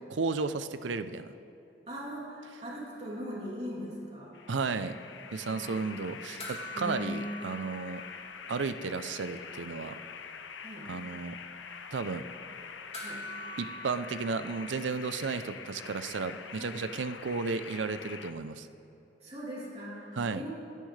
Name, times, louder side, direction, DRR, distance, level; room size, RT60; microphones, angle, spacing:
voice 1, 0.1-1.3 4.5-5.0 5.3-8.0 8.5-10.0 10.9-11.4 11.9-12.2 13.6-18.7 20.2-20.4, right 4 dB, 85° right, 12 dB, 0.5 m, -33 dB
voice 2, 1.9-4.3 5.4-6.4 6.7-7.3 10.6-10.9 12.9-13.2 16.6-16.8 19.2-20.6, equal, 35° right, -6 dB, 3.0 m, -40 dB
sound 1, 4.3-18.3, left 6 dB, 90° left, 0.7 m, -45 dB
sound 2, 6.4-9.1 9.3-9.4 12.9-15.5 17.7-17.8, equal, 35° left, 2.5 m, -45 dB
25.5 x 10.0 x 3.3 m, 2.9 s
head